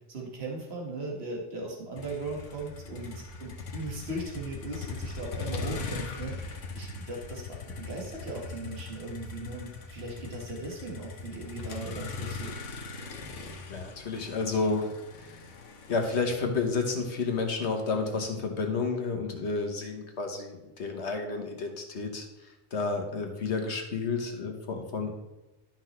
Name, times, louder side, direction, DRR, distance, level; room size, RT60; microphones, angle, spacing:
voice 1, 0.1-3.1 3.4-12.5, right 2 dB, 60° right, -1 dB, 1.9 m, -38 dB
Motor vehicle (road), 2.0-18.1, left 4 dB, 85° left, 1.3 m, -40 dB
voice 2, 13.7-14.9 15.9-22.3 22.7-25.1, left 4 dB, 65° left, 3 dB, 1.5 m, -30 dB
12.0 x 5.9 x 3.2 m, 1.0 s
omnidirectional pair, 1.2 m